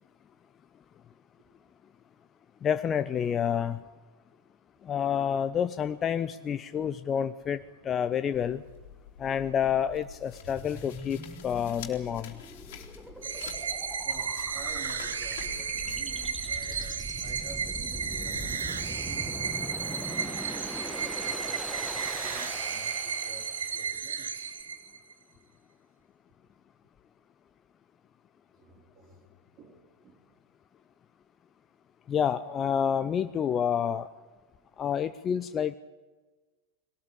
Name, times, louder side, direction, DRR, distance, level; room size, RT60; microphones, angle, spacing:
voice 1, 2.6-3.8 4.8-8.6 9.2-12.3 32.1-34.1 34.8-35.7, left 8 dB, 25° left, 0.6 m, -29 dB
sound 1, 8.3-18.5, left 8 dB, 50° left, 3.1 m, -48 dB
sound 2, 10.4-23.8, right 1 dB, 5° right, 1.5 m, -41 dB
sound 3, 13.2-25.1, right 6 dB, 70° right, 1.6 m, -33 dB
voice 2, 14.0-20.6 21.0-24.6 28.6-29.3 29.6-30.4, right 3 dB, 35° right, 3.5 m, -50 dB
21.5 x 18.5 x 8.4 m
figure-of-eight pair, 90°, 0 cm